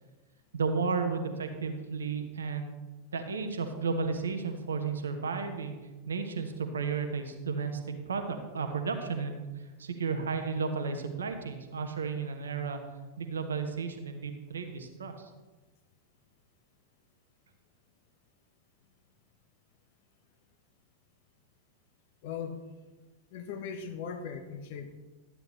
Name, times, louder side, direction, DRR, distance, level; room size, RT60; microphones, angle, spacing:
voice 1, 0.5-2.8 3.1-5.8 6.1-9.4 9.8-12.8 13.2-15.1, right 5 dB, 70° right, 6 dB, 1.0 m, -33 dB
voice 2, 22.2-22.6 23.3-25.0, left 6 dB, 50° left, 7 dB, 1.0 m, -39 dB
12.5 x 9.3 x 3.2 m, 1.2 s
figure-of-eight pair, 90°, 0 cm